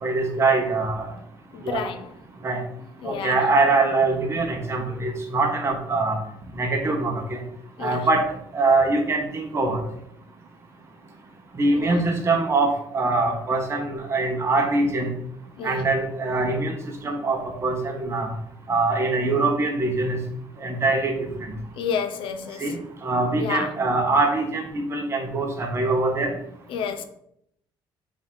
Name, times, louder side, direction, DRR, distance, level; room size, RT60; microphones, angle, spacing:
voice 1, 0.0-1.1 1.6-1.8 2.4-2.6 3.0-6.2 6.6-7.4 7.8-8.2 8.5-9.8 11.6-15.1 15.6-16.7 17.0-18.3 18.7-20.2 20.6-21.2 22.6-22.8 23.0-26.3, right 3 dB, 30° right, 1.3 m, -23 dB
voice 2, 1.5-2.1 3.0-3.4 7.8-8.1 11.8-12.0 15.6-15.9 21.8-22.7 23.4-23.8 26.7-27.0, left 6 dB, 80° left, 0.7 m, -30 dB
7.0 x 3.7 x 3.9 m
cardioid pair, 135°, 9 cm